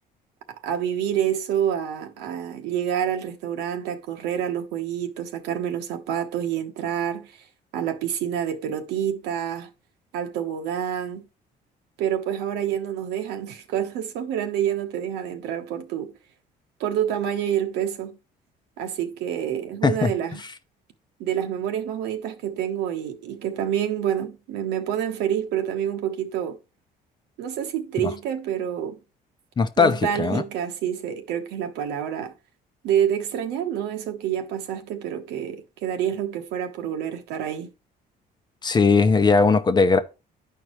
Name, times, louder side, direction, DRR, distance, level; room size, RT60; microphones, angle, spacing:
voice 1, 0.5-7.3 7.7-9.7 10.1-11.3 12.0-16.1 16.8-18.2 18.8-20.4 21.2-26.6 27.4-29.0 29.8-32.3 32.8-37.7, right 9 dB, 85° right, 1.2 m, -27 dB
voice 2, 29.6-30.4 38.6-40.0, left 4 dB, 25° left, 0.8 m, -19 dB
11.5 x 4.7 x 3.1 m
cardioid pair, 110°, 17 cm